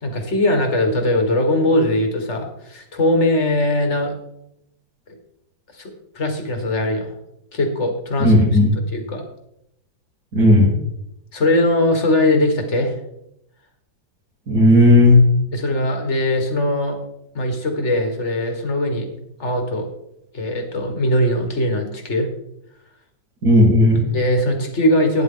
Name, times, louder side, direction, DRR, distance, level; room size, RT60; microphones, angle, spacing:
voice 1, 0.0-4.1 5.7-7.1 7.5-8.4 8.9-9.2 11.3-13.0 15.5-17.0 17.3-19.1 19.4-19.9 20.3-22.3 24.1-25.2, left 1 dB, 40° left, 4 dB, 1.9 m, -20 dB
voice 2, 8.2-8.7 10.3-10.7 14.5-15.2 23.4-24.0, left 1 dB, 55° right, -6 dB, 2.8 m, -13 dB
12.5 x 9.7 x 3.8 m, 0.81 s
omnidirectional pair, 1.9 m